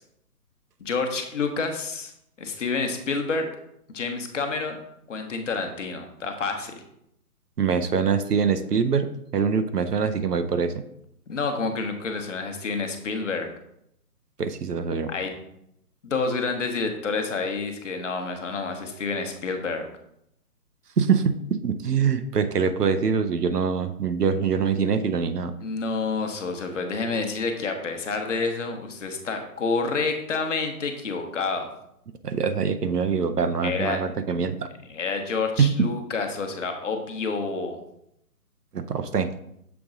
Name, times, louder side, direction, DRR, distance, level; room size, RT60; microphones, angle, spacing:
voice 1, 0.8-2.1 2.4-3.5 3.9-4.8 5.1-6.8 11.3-13.5 15.1-15.4 16.0-19.9 25.6-31.7 33.6-34.0 34.9-37.8, left 4 dB, 50° left, 5 dB, 1.0 m, -28 dB
voice 2, 7.6-10.8 14.4-15.1 21.0-21.3 21.6-25.5 32.2-34.7 35.6-35.8 38.7-39.3, right 6 dB, 80° right, 10 dB, 0.7 m, -24 dB
7.0 x 3.7 x 3.7 m, 0.77 s
figure-of-eight pair, 140°, 46 cm